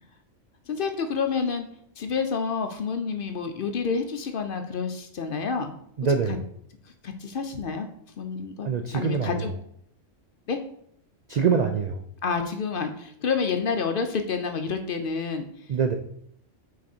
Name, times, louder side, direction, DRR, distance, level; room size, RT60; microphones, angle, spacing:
voice 1, 0.7-1.7 2.0-5.7 6.3-6.4 7.0-7.9 8.2-9.5 10.5-10.6 12.2-15.7, left 5 dB, 55° left, 6 dB, 0.7 m, -29 dB
voice 2, 6.0-6.4 8.6-9.3 11.3-12.0 15.7-16.0, right 6 dB, 85° right, 6 dB, 0.3 m, -24 dB
6.0 x 4.1 x 4.3 m, 0.68 s
omnidirectional pair, 1.3 m